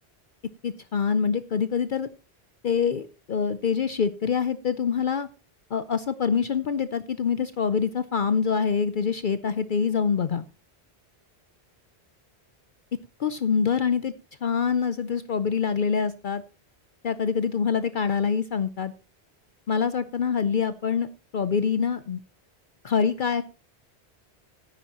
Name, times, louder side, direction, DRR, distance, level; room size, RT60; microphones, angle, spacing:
voice 1, 0.6-2.1 2.6-5.3 5.7-10.4 13.2-14.1 14.4-16.4 17.0-18.9 19.7-21.1 21.3-22.2 22.8-23.4, left 6 dB, 55° left, 13 dB, 0.7 m, -25 dB
13.5 x 10.0 x 2.9 m, 0.32 s
omnidirectional pair, 1.1 m